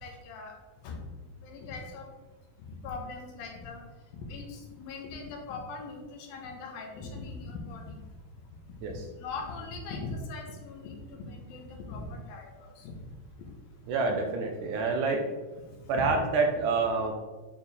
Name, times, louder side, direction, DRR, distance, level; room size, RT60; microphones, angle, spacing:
voice 1, 0.0-0.5 0.8-1.0 1.4-2.0 2.8-3.8 4.1-8.0 9.2-13.0 16.0-16.1, left 4 dB, 90° left, 2 dB, 2.9 m, -40 dB
voice 2, 13.9-15.3 15.9-17.1, right 4 dB, 75° right, 3 dB, 2.1 m, -27 dB
8.8 x 4.4 x 3.5 m, 1.3 s
omnidirectional pair, 4.0 m